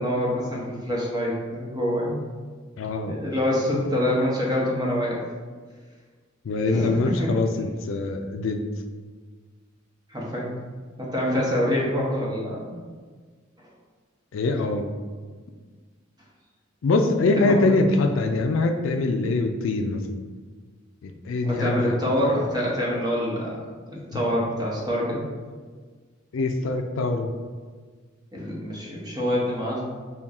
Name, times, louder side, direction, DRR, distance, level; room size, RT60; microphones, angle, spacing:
voice 1, 0.0-2.2 3.0-5.2 6.7-7.3 10.1-10.5 11.0-12.8 17.3-17.6 21.4-23.6 23.9-25.2 28.3-29.8, equal, 20° right, -4 dB, 1.0 m, -26 dB
voice 2, 2.8-3.1 6.4-8.6 14.3-14.8 16.8-20.0 21.0-21.9 26.3-27.3, left 3 dB, 70° left, 5 dB, 0.4 m, -23 dB
5.6 x 2.3 x 3.5 m, 1.5 s
head